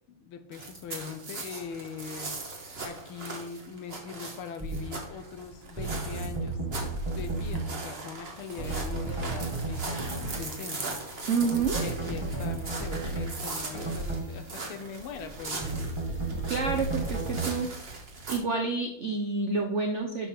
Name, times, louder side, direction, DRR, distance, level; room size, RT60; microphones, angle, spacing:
voice 1, 0.1-11.0 11.7-16.0, left 6 dB, 80° left, 8 dB, 1.6 m, -41 dB
sound 1, 0.5-18.4, right 3 dB, 35° right, 1.3 m, -40 dB
sound 2, 4.6-4.8 5.8-7.7 8.6-10.4 11.4-13.3 13.7-14.3 15.6-17.5, right 3 dB, 20° right, 1.0 m, -33 dB
sound 3, 9.7-17.7, right 1 dB, 50° right, 3.8 m, -52 dB
voice 2, 11.3-11.8 16.5-17.9 18.3-20.3, right 4 dB, 75° right, 4 dB, 0.6 m, -29 dB
11.0 x 3.9 x 4.7 m, 0.77 s
omnidirectional pair, 2.4 m